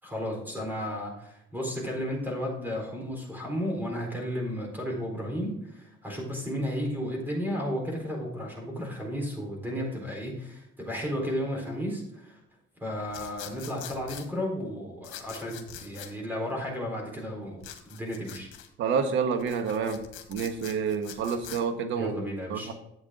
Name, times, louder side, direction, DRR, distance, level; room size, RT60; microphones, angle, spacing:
voice 1, 0.0-12.4 12.8-17.6 17.9-18.5 21.9-22.7, equal, 10° right, -1 dB, 4.2 m, -33 dB
sound 1, 13.1-14.3 15.0-16.1 17.6-18.7 19.3-21.6, left 10 dB, 85° left, 1.5 m, -44 dB
voice 2, 18.8-20.0 20.3-22.2 22.5-22.7, right 6 dB, 75° right, 8 dB, 1.3 m, -28 dB
11.0 x 8.2 x 3.8 m, 0.80 s
cardioid pair, 115°, 20 cm